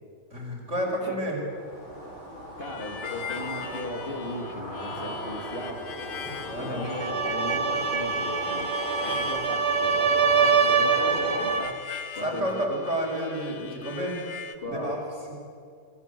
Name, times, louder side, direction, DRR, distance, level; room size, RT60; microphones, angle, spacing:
voice 1, 0.3-1.4 6.5-6.8 12.2-14.2 14.7-15.0 15.3-15.4, equal, 35° right, 0 dB, 5.6 m, -30 dB
voice 2, 0.9-1.2 2.6-5.8 6.5-8.7 9.0-11.8 12.1-12.8 14.6-15.0, left 1 dB, 25° left, 3 dB, 2.8 m, -37 dB
sound 1, 1.4-11.5, equal, 85° left, 8.5 m, -37 dB
Harmonica, 2.6-14.6, left 7 dB, 60° left, 1.8 m, -41 dB
sound 2, 6.8-11.8, right 5 dB, 55° right, 1.9 m, -24 dB
28.5 x 20.5 x 8.4 m, 2.4 s
omnidirectional pair, 2.2 m